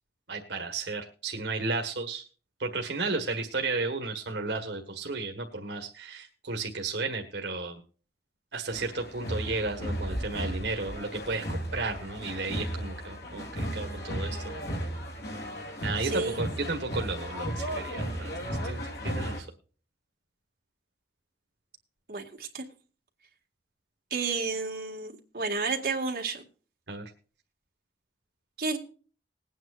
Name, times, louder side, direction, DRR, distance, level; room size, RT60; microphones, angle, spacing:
voice 1, 0.3-2.2 2.6-7.8 8.5-14.6 15.8-19.5 26.9-27.1, right 3 dB, 85° right, 4 dB, 1.5 m, -33 dB
sound 1, 8.7-19.4, equal, 75° left, 3.4 m, -35 dB
voice 2, 16.0-16.4 22.1-22.6 24.1-26.4 28.6-28.8, right 4 dB, 55° right, 0 dB, 2.0 m, -31 dB
20.5 x 9.2 x 2.5 m, 0.38 s
head